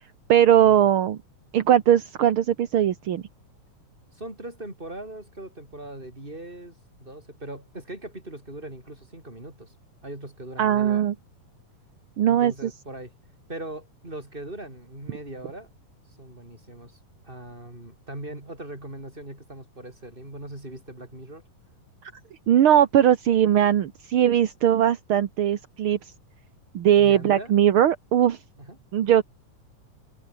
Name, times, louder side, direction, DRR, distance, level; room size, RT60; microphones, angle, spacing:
voice 1, 0.3-1.2 1.5-3.2 10.6-11.1 12.2-12.7 22.5-26.0 26.7-28.4 28.9-29.2, right 10 dB, 55° right, 1.6 m, -20 dB
voice 2, 4.1-9.7 10.0-11.1 12.2-13.1 13.5-15.7 16.2-21.4 27.0-27.5 28.6-28.8, right 1 dB, 15° right, 6.5 m, -40 dB
open air
omnidirectional pair, 3.7 m